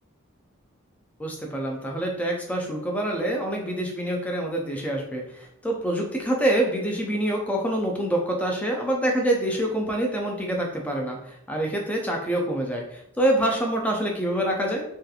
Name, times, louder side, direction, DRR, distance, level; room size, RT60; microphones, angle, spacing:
voice 1, 1.2-11.2 11.5-14.8, right 1 dB, 5° left, 0 dB, 0.4 m, -26 dB
2.8 x 2.3 x 2.3 m, 0.76 s
head